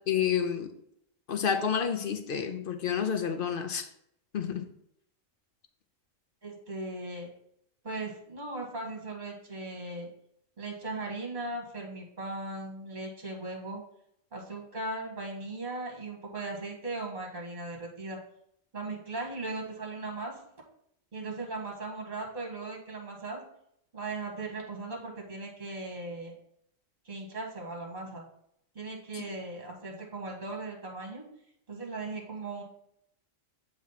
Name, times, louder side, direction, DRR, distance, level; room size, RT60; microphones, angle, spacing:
voice 1, 0.1-0.7 1.3-3.9 4.3-4.7 29.1-29.2, left 7 dB, 55° left, 7 dB, 0.7 m, -29 dB
voice 2, 6.4-7.3 7.8-10.1 10.6-13.8 14.3-18.2 18.7-20.4 21.1-23.4 23.9-26.3 27.1-28.3 28.8-31.2 31.7-32.6, right 2 dB, 35° right, 0 dB, 1.7 m, -38 dB
7.3 x 3.2 x 5.6 m, 0.72 s
omnidirectional pair, 1.3 m